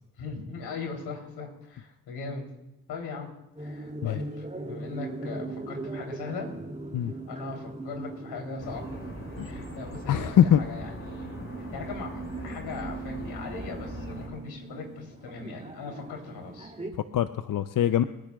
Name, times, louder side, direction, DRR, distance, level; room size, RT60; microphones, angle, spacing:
voice 1, 0.2-2.4 2.9-3.3 3.6-6.5 7.3-8.9 9.4-11.4 11.7-16.7, left 4 dB, 75° left, 1 dB, 3.6 m, -39 dB
sound 1, 3.6-16.9, right 2 dB, 20° right, 2.9 m, -40 dB
sound 2, 8.6-14.3, left 1 dB, 35° left, 5.4 m, -41 dB
voice 2, 10.1-10.6 17.1-18.0, left 10 dB, 55° left, 11 dB, 0.7 m, -23 dB
29.0 x 10.5 x 2.4 m, 0.93 s
supercardioid pair, 50°, 39 cm